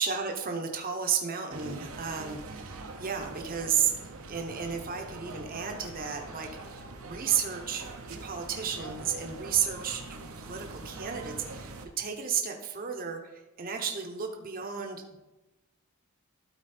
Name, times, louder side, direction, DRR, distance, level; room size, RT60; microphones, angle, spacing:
voice 1, 0.0-4.0 4.3-15.2, right 7 dB, 40° right, 3 dB, 0.9 m, -33 dB
sound 1, 1.5-11.9, right 3 dB, 75° right, 0.9 m, -43 dB
12.5 x 4.3 x 4.3 m, 1.0 s
head